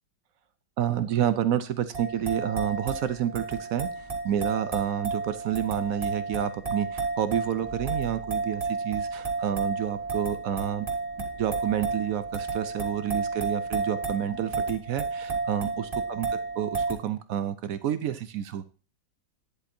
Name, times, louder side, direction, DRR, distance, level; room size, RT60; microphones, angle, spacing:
voice 1, 0.8-10.9 11.4-16.3 16.6-18.7, right 10 dB, 70° right, 12 dB, 0.8 m, -29 dB
sound 1, 1.9-16.9, right 4 dB, 20° right, 2.0 m, -32 dB
10.0 x 8.0 x 2.7 m, 0.36 s
omnidirectional pair, 2.1 m